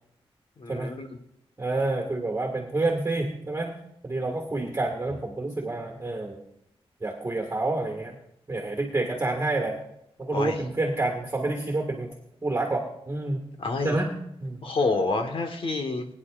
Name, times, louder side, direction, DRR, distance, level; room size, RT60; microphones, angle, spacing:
voice 1, 0.6-1.1 10.3-10.5 13.6-14.0 14.6-16.1, left 3 dB, 65° left, 6 dB, 1.4 m, -27 dB
voice 2, 1.6-3.7 4.0-6.4 7.0-8.1 8.5-9.8 10.2-12.1 12.4-13.4 13.8-14.1 14.4-14.6, right 2 dB, 25° right, 1 dB, 1.8 m, -28 dB
22.0 x 9.8 x 2.5 m, 0.79 s
wide cardioid pair, 175°, 10 cm